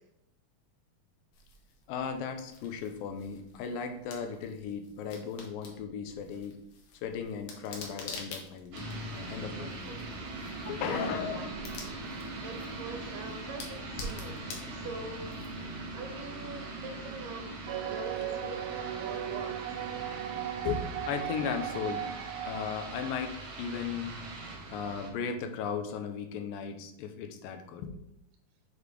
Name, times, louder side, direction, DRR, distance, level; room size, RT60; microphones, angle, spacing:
sound 1, 1.3-15.9, left 2 dB, 65° left, 1.9 m, -48 dB
voice 1, 1.9-6.6 7.0-9.9 10.5-11.5 20.0-20.2 20.6-22.1 22.4-24.2 24.7-27.9, left 6 dB, 90° left, 7 dB, 2.4 m, -36 dB
sound 2, 8.7-25.1, right 2 dB, 55° right, 1.6 m, -41 dB
voice 2, 10.7-11.9 12.4-14.4 14.7-15.3 15.9-18.6 19.0-19.6, right 3 dB, 75° right, 3 dB, 2.5 m, -43 dB
sound 3, 17.7-23.2, right 11 dB, 90° right, 2.3 m, -37 dB
6.9 x 3.2 x 4.9 m, 0.74 s
omnidirectional pair, 3.9 m